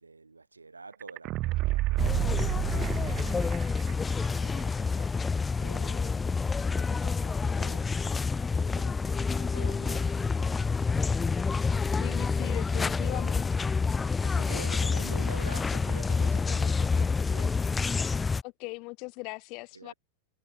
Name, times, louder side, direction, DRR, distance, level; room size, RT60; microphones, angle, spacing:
voice 1, 0.0-10.7 14.2-17.6 19.7-19.9, right 3 dB, 80° right, 7.3 m, -48 dB
sound 1, 1.0-3.9 4.2-4.3, right 18 dB, 35° right, 0.5 m, -30 dB
sound 2, 2.0-18.4, left 4 dB, 15° left, 0.5 m, -28 dB
voice 2, 12.0-13.4 18.4-19.9, left 28 dB, 45° left, 1.5 m, -39 dB
figure-of-eight pair, 90°, 0 cm